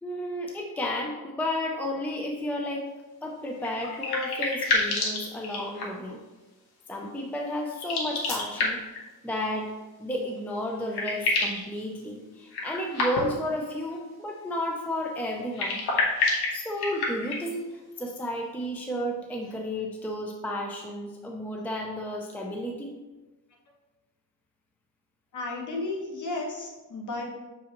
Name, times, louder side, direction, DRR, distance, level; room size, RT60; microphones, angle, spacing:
voice 1, 0.0-2.9 3.2-6.2 6.9-8.8 9.2-9.7 10.0-15.9 16.5-22.9, left 1 dB, 5° left, 0 dB, 0.5 m, -32 dB
sound 1, 3.6-6.1 7.7-9.0 10.4-10.5 10.7-11.7 12.5-13.5 15.4-17.5, left 3 dB, 75° left, 1.6 m, -28 dB
voice 2, 25.3-27.3, left 2 dB, 50° left, -1 dB, 1.4 m, -33 dB
6.9 x 5.0 x 3.0 m, 1.2 s
cardioid pair, 140°, 39 cm